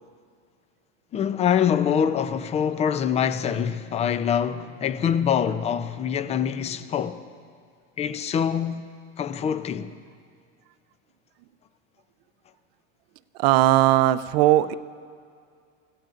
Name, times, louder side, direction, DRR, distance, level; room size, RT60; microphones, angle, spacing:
voice 1, 1.1-7.2 8.0-8.9 9.2-9.9, left 8 dB, 20° left, 0.5 m, -24 dB
voice 2, 13.4-14.7, right 14 dB, 60° right, 0.6 m, -18 dB
28.5 x 15.5 x 2.5 m
supercardioid pair, 130°, 34 cm